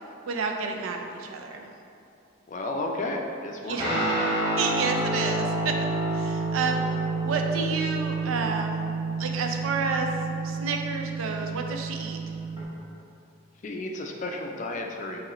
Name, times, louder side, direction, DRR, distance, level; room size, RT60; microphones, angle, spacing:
voice 1, 0.3-1.7 3.6-3.9 4.6-5.8 6.1-6.8 7.1-8.9 9.2-10.1 10.4-12.2, right 4 dB, 90° right, 3 dB, 0.4 m, -30 dB
voice 2, 2.5-4.1 13.6-15.3, left 2 dB, 40° left, 2 dB, 0.4 m, -32 dB
Guitar, 3.8-12.6, right 3 dB, 20° right, 1.0 m, -29 dB
4.9 x 3.1 x 3.0 m, 2.6 s
head